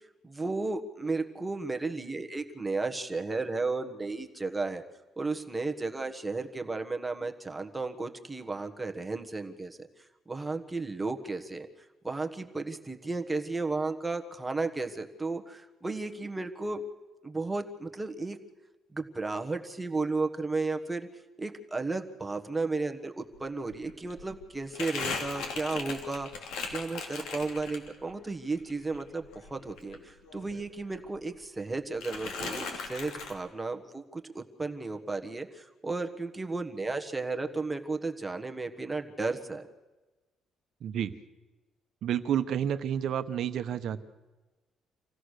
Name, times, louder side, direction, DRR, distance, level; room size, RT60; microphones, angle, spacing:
voice 1, 0.2-4.8 5.2-9.9 10.3-11.7 12.0-16.8 17.2-18.4 18.9-21.1 21.4-39.6, right 3 dB, 10° right, 4 dB, 1.4 m, -34 dB
Crumpling crinkling, 23.3-23.4 23.7-28.1 28.5-30.7 30.9-31.7 32.0-33.3, left 4 dB, 85° left, 3.2 m, -38 dB
voice 2, 40.8-41.1 42.0-44.0, right 9 dB, 60° right, 11 dB, 1.0 m, -30 dB
26.5 x 16.0 x 6.6 m, 1.2 s
cardioid pair, 140°, 0 cm